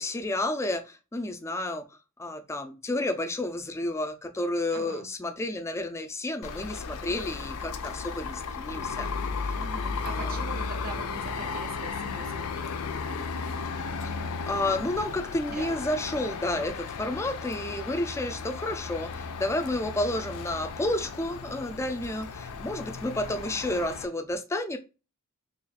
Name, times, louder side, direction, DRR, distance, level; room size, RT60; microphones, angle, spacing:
voice 1, 0.0-1.8 2.2-9.1 9.4-9.6 10.0-10.4 14.0-24.8, left 1 dB, 15° left, 0.4 m, -31 dB
voice 2, 4.7-5.1 9.5-13.3 15.5-15.8 16.0-16.1, right 4 dB, 40° right, 0.5 m, -43 dB
sound 1, 6.4-24.1, left 5 dB, 85° left, 0.5 m, -35 dB
3.0 x 2.4 x 4.0 m
head